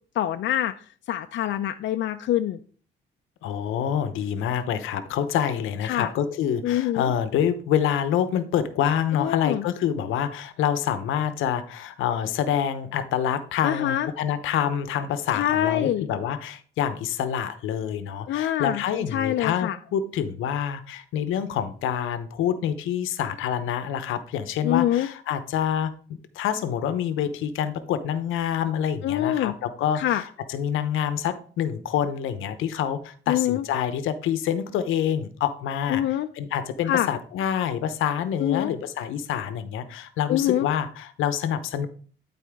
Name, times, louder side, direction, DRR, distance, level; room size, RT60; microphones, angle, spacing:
voice 1, 0.2-0.7 1.1-2.6 5.8-6.1 6.6-7.1 9.1-9.6 13.6-14.1 15.3-16.1 18.3-18.8 19.1-19.8 24.6-25.1 29.0-29.5 29.9-30.2 33.3-33.6 35.9-36.3 36.9-37.1 38.4-38.7 40.3-40.7, left 12 dB, 70° left, 7 dB, 0.5 m, -25 dB
voice 2, 3.4-36.0 36.3-41.9, left 9 dB, 90° left, 11 dB, 0.8 m, -27 dB
12.5 x 4.2 x 3.5 m, 0.43 s
cardioid pair, 90°, 20 cm